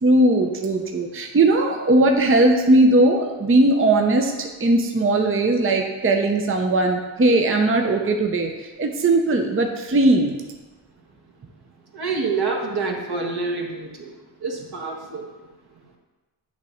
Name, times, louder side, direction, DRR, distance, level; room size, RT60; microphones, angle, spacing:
voice 1, 0.0-10.4, right 2 dB, 25° right, 3 dB, 0.7 m, -19 dB
voice 2, 11.9-14.1 14.4-15.3, right 4 dB, 50° right, 0 dB, 1.4 m, -27 dB
8.3 x 3.0 x 5.1 m, 1.2 s
cardioid pair, 55°, 49 cm